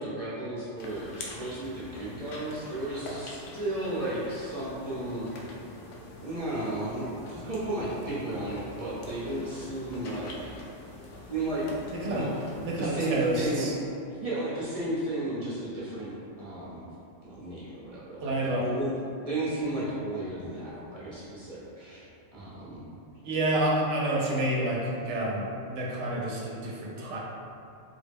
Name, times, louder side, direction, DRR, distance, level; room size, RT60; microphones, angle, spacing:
voice 1, 0.0-5.5 6.2-10.5 11.3-11.6 12.1-12.4 12.8-13.7 14.2-16.8 17.2-18.9 19.2-22.0 22.3-22.8, right 1 dB, 35° right, -9 dB, 0.7 m, -34 dB
sound 1, 0.8-13.6, left 2 dB, 75° left, 0.9 m, -45 dB
voice 2, 11.9-12.3 12.6-13.7 18.2-18.7 23.2-27.2, right 1 dB, 70° right, -3 dB, 0.8 m, -29 dB
3.8 x 2.1 x 3.3 m, 2.6 s
omnidirectional pair, 1.3 m